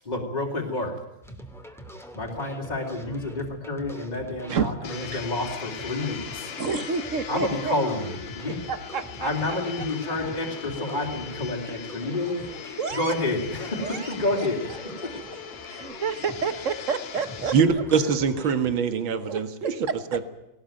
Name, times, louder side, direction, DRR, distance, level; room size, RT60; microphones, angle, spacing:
voice 1, 0.0-1.0 2.1-6.5 7.3-8.6 9.2-14.6 15.0-15.1, left 2 dB, 20° left, -1 dB, 3.1 m, -29 dB
sound 1, 1.2-18.8, equal, ahead, 2.4 m, -44 dB
voice 2, 4.5-5.2 6.6-7.8 8.5-9.9 12.2-12.3 12.8-13.1 13.8-14.5 15.0-15.2 15.7-17.8 19.2-20.3, right 5 dB, 45° right, 12 dB, 1.3 m, -31 dB
Domestic sounds home sounds, 4.8-17.6, left 7 dB, 70° left, 2.4 m, -39 dB
voice 3, 17.5-19.7 20.1-20.2, right 6 dB, 70° right, 9 dB, 2.4 m, -23 dB
20.0 x 19.0 x 9.1 m, 0.93 s
omnidirectional pair, 2.2 m